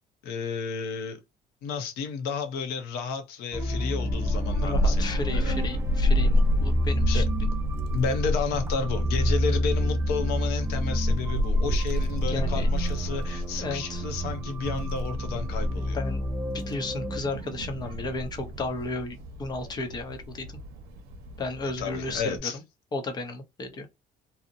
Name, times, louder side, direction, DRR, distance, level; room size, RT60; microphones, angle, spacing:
voice 1, 0.2-1.2 1.6-5.5 7.1-7.5 7.9-16.0 21.6-22.6, left 5 dB, 90° left, 0.7 m, -32 dB
sound 1, 3.5-17.2, equal, 15° right, 0.3 m, -30 dB
Child speech kid speaking / Wind, 4.0-22.4, left 1 dB, 80° right, 0.7 m, -29 dB
voice 2, 4.6-7.2 12.3-12.7 13.6-14.0 15.9-16.2 16.5-20.5 21.4-22.6 22.9-23.9, left 3 dB, 25° left, 0.6 m, -34 dB
2.7 x 2.0 x 2.5 m
cardioid pair, 155°, 16 cm